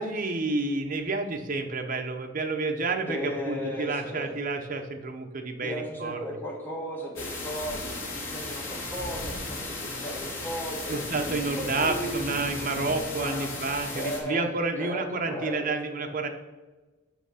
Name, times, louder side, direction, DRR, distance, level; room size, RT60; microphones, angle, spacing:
voice 1, 0.0-6.2 10.9-16.3, right 3 dB, 40° right, 4 dB, 0.8 m, -30 dB
voice 2, 3.1-4.3 5.6-11.0 11.6-12.4 13.2-13.5 13.9-14.5 14.8-15.6, equal, 10° left, -1 dB, 1.5 m, -35 dB
sound 1, 7.2-14.2, left 2 dB, 75° left, 2.0 m, -35 dB
5.9 x 5.7 x 5.6 m, 1.2 s
head